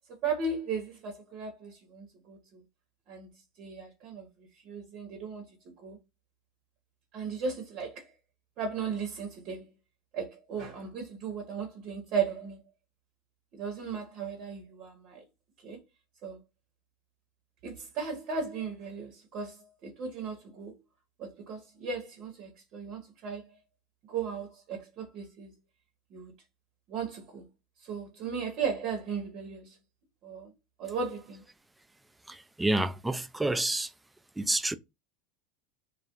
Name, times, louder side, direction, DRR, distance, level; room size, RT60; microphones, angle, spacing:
voice 1, 0.1-2.6 3.1-3.3 3.6-6.0 7.1-8.1 8.6-9.6 10.1-12.6 13.5-15.2 15.6-15.8 16.2-16.4 17.6-20.8 21.2-23.5 24.1-25.5 26.1-26.3 26.9-27.5 27.8-29.8 30.2-30.5 30.8-31.4, right 5 dB, 50° right, 0.8 m, -36 dB
voice 2, 32.3-33.9 34.4-34.7, right 2 dB, 10° right, 0.3 m, -29 dB
2.2 x 2.1 x 2.8 m
hypercardioid pair, 85°, 0 cm